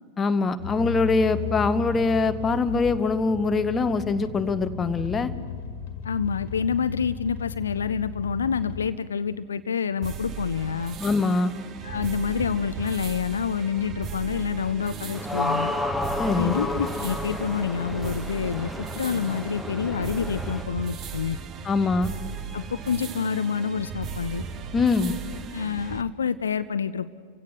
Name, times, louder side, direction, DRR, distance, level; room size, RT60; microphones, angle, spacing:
voice 1, 0.2-5.3 11.0-11.5 16.2-16.6 21.6-22.1 24.7-25.2, left 4 dB, 20° left, 11 dB, 1.0 m, -23 dB
sound 1, 0.6-8.9, left 7 dB, 55° left, 1.8 m, -35 dB
voice 2, 6.0-11.0 11.8-15.7 16.3-21.4 22.5-24.4 25.5-27.1, left 6 dB, 70° left, 13 dB, 0.5 m, -27 dB
sound 2, 10.0-26.0, right 6 dB, 30° right, 1.1 m, -36 dB
sound 3, 15.1-20.6, left 2 dB, ahead, 1.3 m, -31 dB
30.0 x 16.5 x 6.6 m, 2.1 s
figure-of-eight pair, 90°, 0 cm